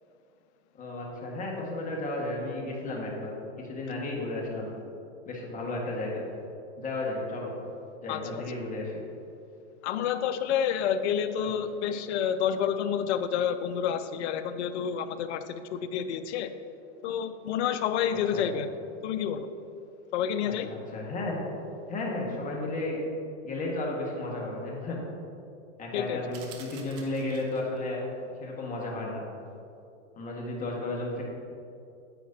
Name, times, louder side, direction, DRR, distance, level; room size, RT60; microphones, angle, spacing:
voice 1, 0.7-3.3 3.6-4.7 5.3-6.2 6.8-7.5 8.0-9.0 18.3-18.5 20.4-21.4 21.9-23.0 23.4-25.0 25.8-28.0 28.4-29.2 30.2-31.2, left 2 dB, 20° left, -2 dB, 1.7 m, -33 dB
voice 2, 8.1-8.4 9.8-16.5 17.0-18.7 19.0-19.5 20.1-20.7 25.9-26.2, left 8 dB, 65° left, 10 dB, 0.7 m, -29 dB
sound 1, 26.3-27.8, right 7 dB, 40° right, 1.1 m, -49 dB
9.2 x 8.5 x 2.8 m, 2.6 s
hypercardioid pair, 125°, 37 cm